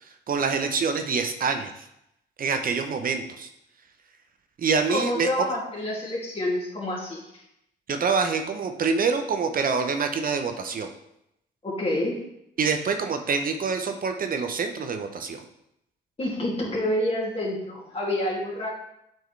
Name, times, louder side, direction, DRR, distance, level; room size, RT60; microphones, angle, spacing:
voice 1, 0.3-1.7 2.4-3.5 4.6-5.3 7.9-10.9 12.6-15.4, right 5 dB, 45° right, 6 dB, 0.7 m, -26 dB
voice 2, 4.9-7.4 11.6-12.2 16.2-18.7, left 1 dB, 30° left, -4 dB, 2.4 m, -28 dB
8.0 x 4.6 x 3.2 m, 0.81 s
cardioid pair, 90°, 20 cm